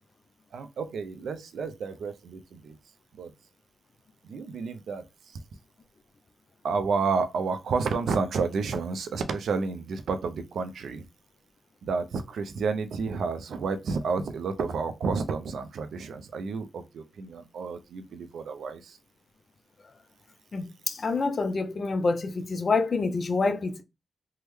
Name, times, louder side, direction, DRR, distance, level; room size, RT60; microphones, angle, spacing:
voice 1, 0.5-2.8 3.2-3.3 4.2-5.4 6.6-11.1 11.8-19.0, right 4 dB, 75° right, 0.4 m, -30 dB
voice 2, 20.5-23.8, left 3 dB, 50° left, 0.4 m, -27 dB
3.4 x 2.1 x 3.1 m
cardioid pair, 75°, 0 cm